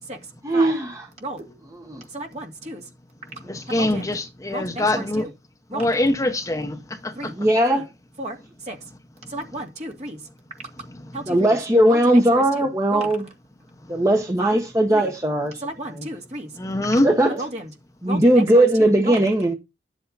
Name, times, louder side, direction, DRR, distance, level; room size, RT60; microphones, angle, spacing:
voice 1, 0.4-1.1 1.7-2.0 3.4-3.6 4.9-5.0 7.3-7.8 11.3-13.3 13.9-16.1 17.0-17.4 18.0-19.5, right 1 dB, 20° right, 1.2 m, -19 dB
voice 2, 1.2-1.6 2.1-2.8 3.7-4.1 4.5-5.3 5.7-5.9 7.2-7.3 7.7-7.8 8.2-8.4 8.7-8.8 9.3-10.2 11.1-11.6 11.9-13.1 14.4-14.6 14.9-15.1 15.6-16.5 17.4-17.7 18.0-19.2, right 1 dB, 40° right, 2.4 m, -33 dB
voice 3, 3.5-5.3 5.7-7.3 16.6-17.1, left 1 dB, 20° left, 0.9 m, -23 dB
11.0 x 8.2 x 4.1 m
head